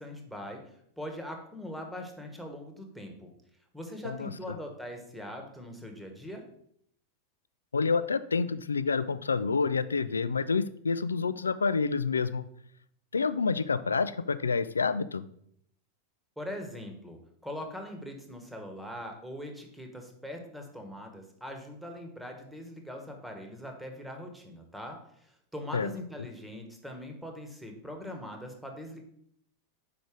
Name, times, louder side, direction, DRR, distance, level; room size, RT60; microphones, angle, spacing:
voice 1, 0.0-3.3 3.7-6.5 16.4-29.0, left 1 dB, ahead, 3 dB, 1.2 m, -42 dB
voice 2, 7.7-12.4 13.1-15.3 25.7-25.9, left 4 dB, 75° left, 14 dB, 0.3 m, -28 dB
5.1 x 4.8 x 4.6 m, 0.69 s
figure-of-eight pair, 90°, 0 cm